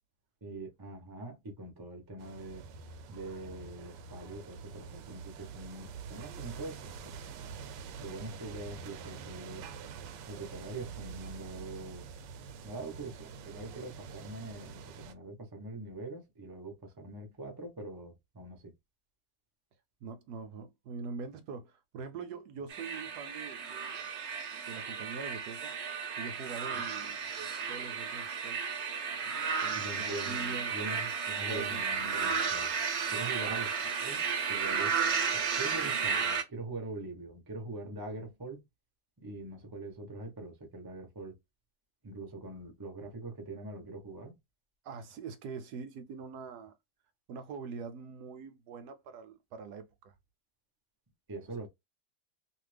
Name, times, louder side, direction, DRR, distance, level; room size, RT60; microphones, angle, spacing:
voice 1, 0.4-2.7 3.1-7.2 8.0-9.7 10.3-12.1 12.6-18.7 26.7-26.9 29.7-32.7 33.1-33.7 34.0-34.9 35.3-38.6 39.2-41.3 42.0-44.4 51.3-51.7, right 2 dB, 20° right, 0.6 m, -43 dB
sound 1, 2.2-15.1, right 6 dB, 90° right, 1.2 m, -46 dB
voice 2, 20.0-24.1 24.5-25.7 26.2-28.7 29.6-31.0 31.5-31.8 33.5-33.6 44.8-46.7 47.3-50.1, right 5 dB, 70° right, 1.1 m, -43 dB
sound 2, 22.7-36.4, right 6 dB, 55° right, 0.8 m, -33 dB
2.7 x 2.5 x 3.2 m
omnidirectional pair, 1.9 m